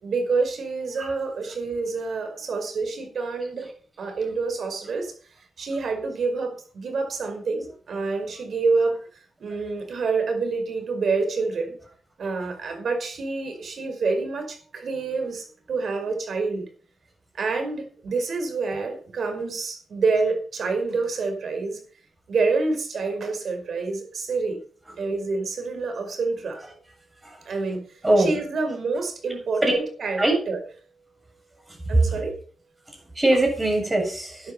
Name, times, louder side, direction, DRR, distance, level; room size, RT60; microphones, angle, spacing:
voice 1, 0.0-3.7 4.0-5.1 5.6-9.0 9.4-11.8 12.2-16.6 17.3-21.8 22.3-24.6 25.0-26.6 27.5-30.6 31.9-32.3 34.4-34.5, right 4 dB, 65° right, 5 dB, 5.2 m, -27 dB
voice 2, 28.0-28.4 29.6-29.8 30.2-30.3 31.7-31.8 32.1-32.2 32.9-34.5, right 1 dB, 20° right, 2 dB, 7.6 m, -22 dB
12.5 x 10.5 x 5.7 m, 0.43 s
cardioid pair, 95°, 0 cm